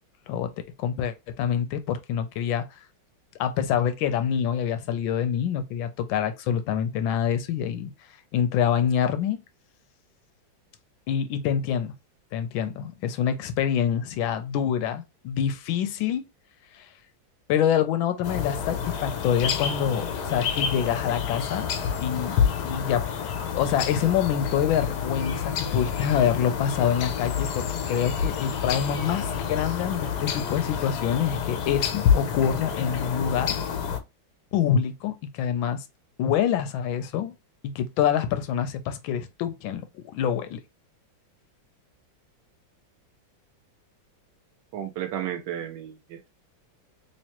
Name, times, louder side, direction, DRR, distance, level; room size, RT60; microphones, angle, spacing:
voice 1, 0.8-2.6 3.4-7.9 8.3-9.4 11.1-11.9 12.3-16.3 16.7-16.9 17.5-21.7 22.0-23.1 23.5-33.5 34.5-35.8 36.2-37.3 37.6-39.9 40.1-40.6, left 9 dB, 90° left, 1.4 m, -26 dB
sound 1, 18.2-34.0, left 7 dB, 70° left, 1.1 m, -28 dB
voice 2, 44.7-46.3, right 10 dB, 75° right, 1.2 m, -33 dB
3.5 x 3.1 x 2.9 m
omnidirectional pair, 2.1 m